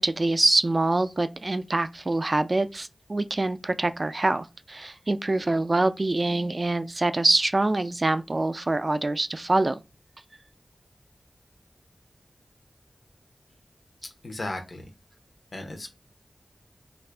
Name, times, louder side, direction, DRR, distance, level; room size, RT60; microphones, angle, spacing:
voice 1, 0.0-9.8, right 2 dB, 45° right, 0.3 m, -25 dB
voice 2, 14.0-14.9 15.5-15.9, left 2 dB, 60° left, 0.6 m, -36 dB
2.7 x 2.4 x 3.3 m
wide cardioid pair, 65°, 0 cm